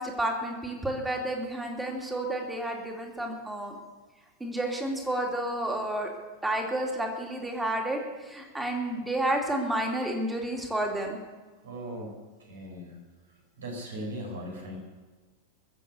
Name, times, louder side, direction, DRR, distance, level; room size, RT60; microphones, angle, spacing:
voice 1, 0.0-3.7 4.4-6.1 6.4-11.2, right 1 dB, 10° right, 1 dB, 2.8 m, -30 dB
voice 2, 11.6-12.1 12.5-13.0 13.6-14.8, equal, 70° right, 0 dB, 4.7 m, -38 dB
22.0 x 7.8 x 6.8 m, 1.3 s
figure-of-eight pair, 90°, 0 cm